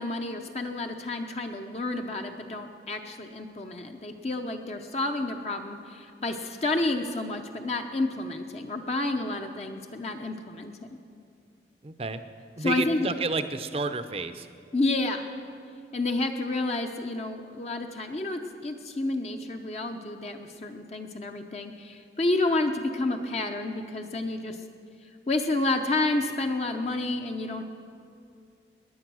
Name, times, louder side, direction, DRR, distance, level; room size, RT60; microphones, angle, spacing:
voice 1, 0.0-10.7 12.6-13.1 14.7-15.3 15.9-24.6 25.3-27.6, left 2 dB, 35° left, 4 dB, 0.7 m, -30 dB
voice 2, 11.8-12.2 12.6-14.5, right 3 dB, 35° right, 11 dB, 0.6 m, -30 dB
19.0 x 10.0 x 6.2 m, 2.4 s
head